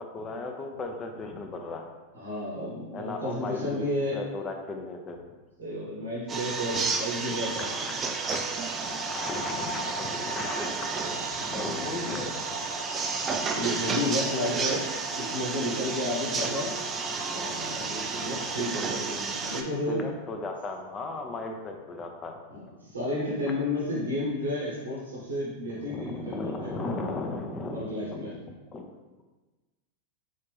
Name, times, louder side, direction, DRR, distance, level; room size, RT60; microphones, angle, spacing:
voice 1, 0.0-1.9 2.9-3.9 4.1-5.2 6.7-7.0 7.6-12.3 13.7-14.0 17.0-18.6 19.9-22.4 25.7-28.2 28.7-28.8, left 3 dB, 25° left, 3 dB, 0.5 m, -37 dB
voice 2, 2.2-4.2 5.6-7.7 11.5-11.7 12.0-12.2 13.5-14.9 15.1-16.7 17.3-20.0 22.5-26.7 27.7-28.3, left 1 dB, 85° right, -6 dB, 1.0 m, -32 dB
sound 1, 6.3-19.6, right 4 dB, 25° right, 0.4 m, -31 dB
4.2 x 2.5 x 3.3 m, 1.2 s
hypercardioid pair, 90°, 0 cm